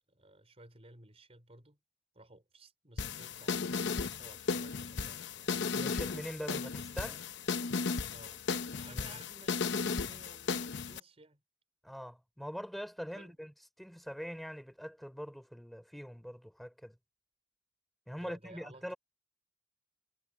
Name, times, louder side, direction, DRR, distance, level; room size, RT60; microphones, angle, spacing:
voice 1, 0.1-1.8 2.1-5.6 6.4-6.8 8.1-8.4 8.7-11.4 13.1-13.4 18.1-18.9, right 2 dB, 30° right, 4.2 m, -56 dB
sound 1, 3.0-11.0, left 5 dB, 65° left, 0.8 m, -35 dB
voice 2, 5.7-7.2 8.9-9.2 11.8-13.5 13.8-16.9 18.1-19.0, equal, ahead, 4.3 m, -43 dB
head